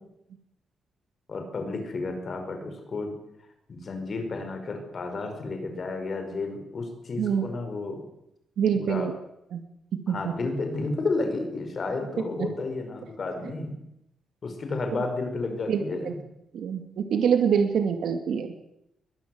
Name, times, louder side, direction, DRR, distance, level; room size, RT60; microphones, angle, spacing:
voice 1, 1.3-3.1 3.7-8.0 8.7-9.1 10.1-13.8 14.4-16.2, left 3 dB, 35° left, 6 dB, 5.4 m, -32 dB
voice 2, 8.6-9.1 9.5-9.6 10.1-10.3 12.4-12.5 15.7-16.1 16.5-18.5, right 7 dB, 70° right, 6 dB, 2.4 m, -25 dB
22.5 x 21.5 x 8.0 m, 0.83 s
wide cardioid pair, 170°, 0 cm